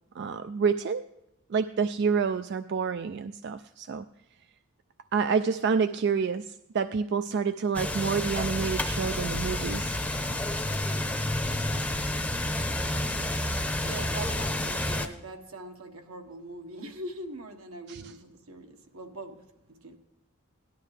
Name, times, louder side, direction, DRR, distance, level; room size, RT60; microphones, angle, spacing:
voice 1, 0.2-1.0 1.5-4.1 5.1-9.9 17.9-18.2, right 5 dB, 50° right, 11 dB, 0.3 m, -28 dB
sound 1, 7.7-15.1, left 1 dB, 5° left, 0.7 m, -30 dB
voice 2, 13.8-19.4 19.7-20.0, right 2 dB, 80° right, 4 dB, 1.4 m, -42 dB
17.5 x 11.5 x 3.3 m, 0.87 s
head